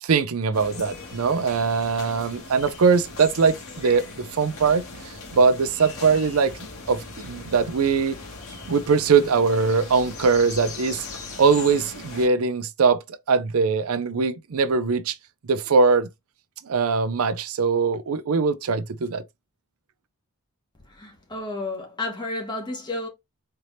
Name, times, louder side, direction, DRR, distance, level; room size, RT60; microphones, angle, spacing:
voice 1, 0.0-4.8 5.3-8.2 8.7-11.1 11.4-15.2 15.5-16.1 16.6-19.2, right 5 dB, 75° right, 0.5 m, -21 dB
sound 1, 0.5-12.3, left 3 dB, 70° left, 1.8 m, -39 dB
voice 2, 20.9-23.1, left 2 dB, 20° left, 1.3 m, -32 dB
4.4 x 3.3 x 2.7 m
head